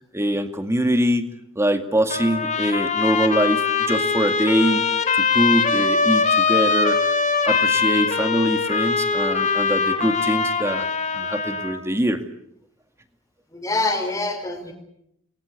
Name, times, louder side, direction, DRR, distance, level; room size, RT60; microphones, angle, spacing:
voice 1, 0.1-1.3 1.6-4.8 5.1-10.9 11.1-12.2, equal, 15° right, 7 dB, 2.1 m, -23 dB
Trumpet, 2.1-11.8, left 5 dB, 35° left, 3.4 m, -22 dB
voice 2, 13.5-14.7, left 2 dB, 15° left, 2 dB, 5.0 m, -25 dB
29.0 x 22.5 x 8.2 m, 0.77 s
head